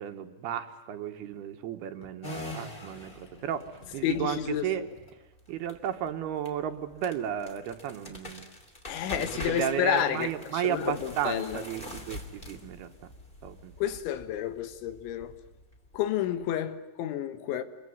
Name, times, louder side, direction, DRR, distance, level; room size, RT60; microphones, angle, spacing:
voice 1, 0.0-4.9 5.5-8.5 9.2-13.1 13.4-13.7, right 10 dB, 70° right, 2.8 m, -34 dB
sound 1, 2.2-16.4, left 1 dB, 15° left, 2.1 m, -45 dB
voice 2, 4.0-4.7 8.9-10.3 10.6-11.6 13.8-15.3 15.9-17.6, left 10 dB, 85° left, 3.8 m, -30 dB
27.0 x 23.0 x 9.4 m
omnidirectional pair, 5.2 m